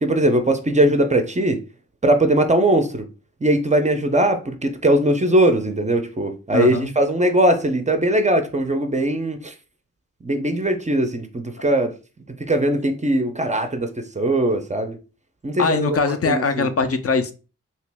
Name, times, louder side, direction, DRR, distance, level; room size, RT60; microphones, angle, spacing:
voice 1, 0.0-1.6 2.0-3.1 3.4-9.5 10.2-11.9 12.5-15.0 15.4-16.7, right 1 dB, 25° right, 0.4 m, -20 dB
voice 2, 6.5-6.9 15.6-17.3, left 4 dB, 50° left, 0.4 m, -21 dB
2.9 x 2.8 x 3.3 m
wide cardioid pair, 125°, 31 cm